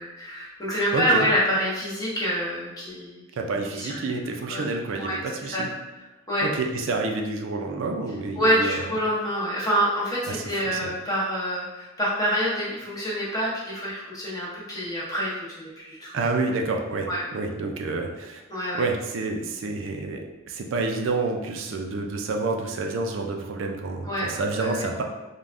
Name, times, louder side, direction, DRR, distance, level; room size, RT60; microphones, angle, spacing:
voice 1, 0.0-3.2 3.7-4.0 4.4-4.7 5.0-5.2 5.5-5.6 6.3-6.4 8.4-16.1 17.1-17.2 18.5-18.8 24.0-24.3 24.6-24.8, equal, 20° left, -7 dB, 0.7 m, -26 dB
voice 2, 0.9-1.3 3.3-5.7 6.4-8.8 10.3-10.9 16.1-18.4 18.8-25.0, right 3 dB, 80° right, 3 dB, 0.4 m, -29 dB
3.3 x 2.1 x 2.5 m, 1.1 s
head